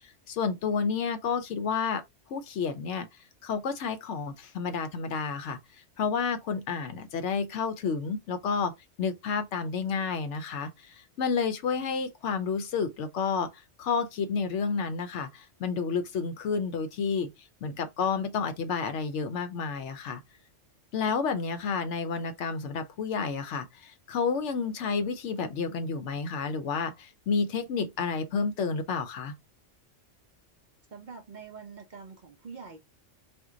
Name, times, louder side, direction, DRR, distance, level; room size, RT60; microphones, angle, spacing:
voice 1, 0.3-2.0 2.3-3.1 3.4-5.6 6.0-8.7 9.0-17.3 17.6-20.2 20.9-29.3, left 5 dB, 75° left, 1.0 m, -30 dB
voice 2, 30.9-32.8, right 5 dB, 55° right, 0.5 m, -45 dB
4.3 x 2.2 x 3.7 m
omnidirectional pair, 1.3 m